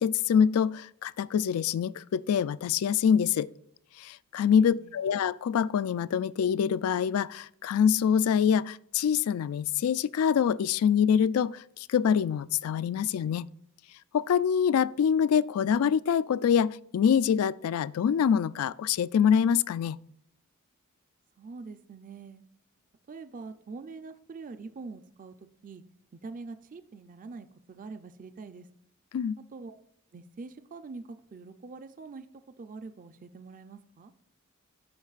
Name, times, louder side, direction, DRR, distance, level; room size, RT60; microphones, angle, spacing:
voice 1, 0.0-3.5 4.0-13.5 14.1-20.0 29.1-29.4, left 7 dB, 70° left, 0.3 m, -25 dB
voice 2, 4.4-4.9 21.4-22.4 23.1-25.8 26.2-28.7 29.4-29.8 30.1-32.3 32.6-34.1, right 4 dB, 40° right, 0.4 m, -44 dB
14.0 x 5.2 x 2.4 m
head